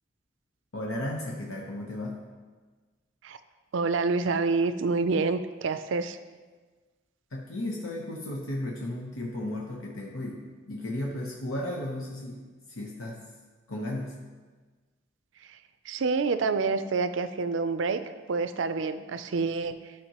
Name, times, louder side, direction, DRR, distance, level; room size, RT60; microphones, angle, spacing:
voice 1, 0.7-2.2 7.3-12.4 12.7-13.2 13.7-14.2, left 1 dB, 90° left, -2 dB, 0.9 m, -34 dB
voice 2, 3.7-6.2 15.9-19.8, right 4 dB, 65° right, 11 dB, 0.4 m, -27 dB
12.0 x 5.1 x 2.9 m, 1.4 s
head